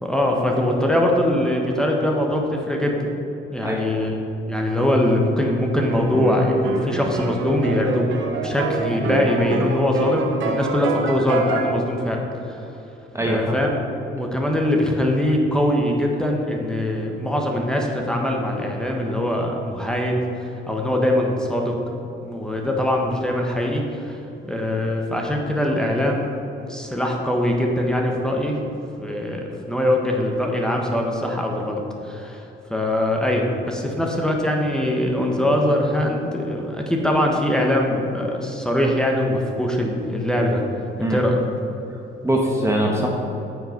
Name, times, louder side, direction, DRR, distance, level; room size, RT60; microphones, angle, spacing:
voice 1, 0.0-3.1 3.5-4.2 4.5-8.1 8.4-12.6 13.3-13.7 14.1-20.2 20.7-21.7 22.2-24.2 24.4-26.3 26.7-28.6 29.0-32.4 32.7-40.6 41.0-41.4, left 1 dB, 5° left, 0 dB, 1.3 m, -22 dB
sound 1, 5.7-11.7, right 4 dB, 80° right, 1.0 m, -26 dB
voice 2, 13.1-13.5 41.0-41.2 42.2-43.1, right 1 dB, 15° right, -1 dB, 1.2 m, -22 dB
9.3 x 5.8 x 5.3 m, 3.0 s
cardioid pair, 90°, 20 cm